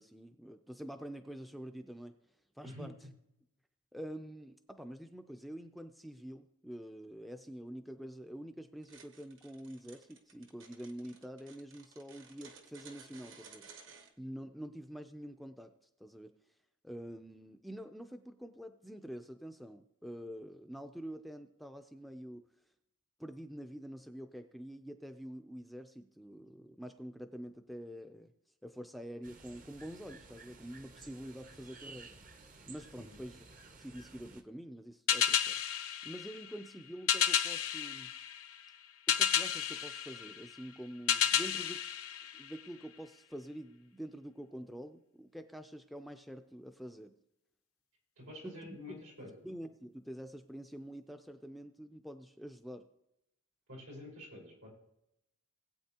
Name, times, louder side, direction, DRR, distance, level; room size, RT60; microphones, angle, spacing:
voice 1, 0.0-2.1 2.6-2.9 3.9-15.7 16.0-16.3 16.8-22.4 23.2-28.3 28.6-32.2 32.7-33.4 33.8-35.6 36.0-38.1 39.1-41.8 42.3-47.2 48.4-49.0 49.4-52.9, equal, ahead, 7 dB, 0.4 m, -47 dB
sound 1, 8.8-14.1, right 5 dB, 60° right, 1.2 m, -56 dB
sound 2, 29.2-34.4, right 3 dB, 35° right, 0.7 m, -54 dB
sound 3, 35.1-42.9, left 9 dB, 80° left, 0.7 m, -33 dB
voice 2, 48.2-49.5 53.7-54.7, left 1 dB, 85° right, -4 dB, 4.9 m, -48 dB
19.0 x 8.4 x 2.9 m, 0.83 s
head